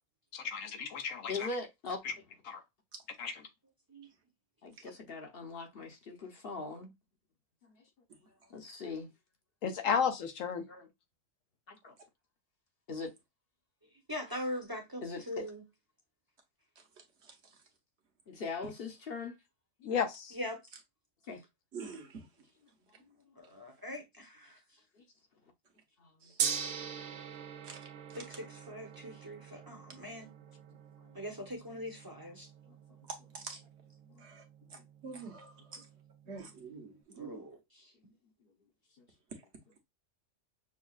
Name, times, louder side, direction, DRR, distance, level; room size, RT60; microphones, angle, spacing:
voice 1, 0.3-1.5 2.0-2.1 2.5-2.6 3.2-3.4 9.6-10.6 19.8-20.4, left 6 dB, 85° left, 1.2 m, -33 dB
voice 2, 1.3-2.0 4.6-6.9 8.5-9.1 10.7-10.9 11.7-11.9 12.9-13.1 15.0-15.5 18.3-19.4 21.3-21.4 25.0-25.1 26.0-26.3 34.7-34.8 36.9-37.0, left 4 dB, 50° left, 1.0 m, -41 dB
voice 3, 14.1-15.6 20.3-20.6 23.4-24.6 28.1-30.3 31.1-32.5 37.2-37.9, left 1 dB, 20° right, 0.8 m, -42 dB
voice 4, 21.7-22.3 26.2-26.4 27.6-28.2 33.1-33.6 34.2-34.4 35.0-35.9 36.3-37.5, right 4 dB, 60° right, 1.2 m, -46 dB
Gong, 26.4-36.6, right 7 dB, 85° right, 1.0 m, -43 dB
6.3 x 2.3 x 2.4 m
omnidirectional pair, 1.3 m